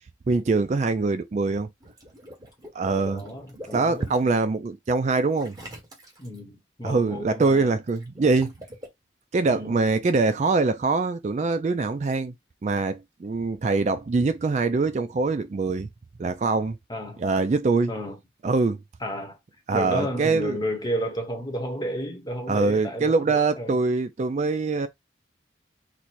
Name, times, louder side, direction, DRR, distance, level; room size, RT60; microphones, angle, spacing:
voice 1, 0.3-1.7 2.7-3.2 3.7-5.6 6.8-8.5 9.3-12.4 12.6-15.9 16.2-16.8 17.2-17.9 18.4-18.8 19.7-20.6 22.5-24.9, right 3 dB, 40° right, 0.3 m, -23 dB
Water / Liquid, 1.8-4.3 5.4-6.4 7.9-8.9, equal, 20° right, 1.3 m, -42 dB
voice 2, 3.1-4.1 6.2-7.8 9.5-9.7 16.9-17.2 17.9-18.2 19.0-19.4 19.7-23.8, equal, 20° left, 0.9 m, -32 dB
4.2 x 2.1 x 4.5 m
head